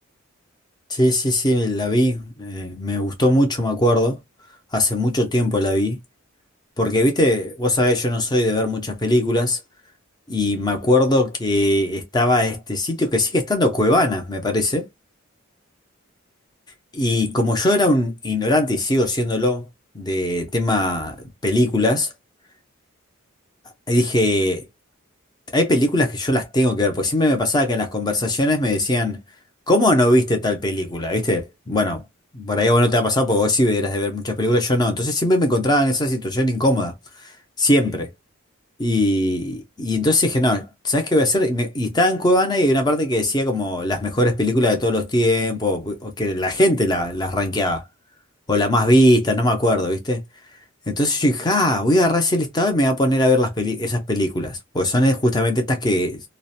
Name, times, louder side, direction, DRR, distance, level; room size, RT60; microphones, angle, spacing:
voice 1, 0.9-4.2 4.7-6.0 6.8-9.6 10.3-14.9 16.9-19.7 19.9-21.2 21.4-22.1 23.9-24.6 25.5-29.2 29.7-32.0 32.3-36.9 37.2-38.1 38.8-47.8 48.5-50.2 50.9-56.2, left 1 dB, 20° left, 0.5 m, -20 dB
2.4 x 2.0 x 2.7 m
head